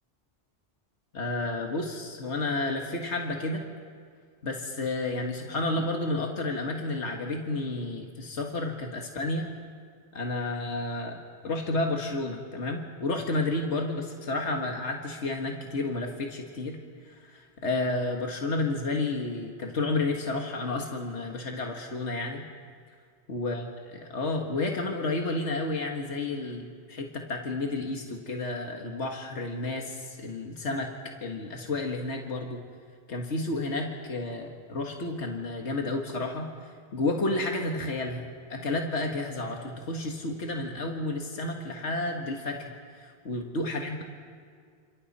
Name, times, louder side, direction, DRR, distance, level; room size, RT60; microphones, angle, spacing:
voice 1, 1.1-3.6 4.4-9.5 10.1-11.2 11.4-16.8 17.0-22.4 23.3-30.9 31.2-32.6 33.1-44.0, left 2 dB, 80° left, 1 dB, 2.0 m, -31 dB
28.5 x 27.0 x 4.3 m, 2.1 s
omnidirectional pair, 1.1 m